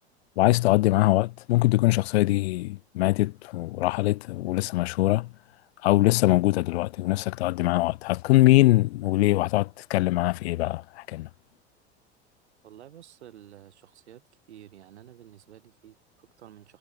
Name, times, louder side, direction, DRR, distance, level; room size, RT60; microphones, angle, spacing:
voice 1, 0.4-5.3 5.8-11.3, left 18 dB, 70° left, 0.5 m, -22 dB
voice 2, 12.6-14.2 14.5-16.8, right 11 dB, 75° right, 7.0 m, -50 dB
hypercardioid pair, 80°, 33 cm